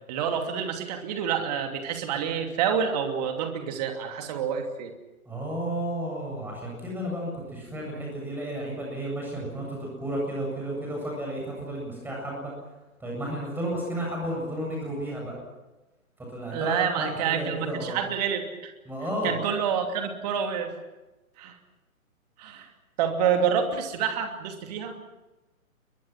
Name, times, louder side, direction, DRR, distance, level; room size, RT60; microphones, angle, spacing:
voice 1, 0.1-4.9 16.5-18.7 19.2-20.7 21.4-21.6 22.4-22.7 23.0-25.0, right 7 dB, 30° right, 5 dB, 2.8 m, -28 dB
voice 2, 5.2-12.5 13.0-15.3 16.3-18.0 18.9-19.4, right 1 dB, 5° right, -2 dB, 7.9 m, -32 dB
28.5 x 23.0 x 6.1 m, 1.1 s
figure-of-eight pair, 135°, 42 cm